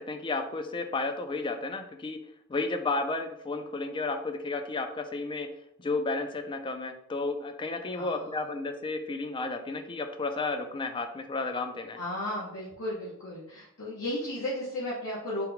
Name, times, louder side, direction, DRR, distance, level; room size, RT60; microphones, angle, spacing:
voice 1, 0.0-2.2 2.5-5.5 5.8-12.0, left 3 dB, 25° left, 7 dB, 0.4 m, -32 dB
voice 2, 7.9-8.3 12.0-15.5, left 1 dB, 70° left, -6 dB, 0.9 m, -34 dB
4.3 x 2.2 x 3.8 m, 0.74 s
head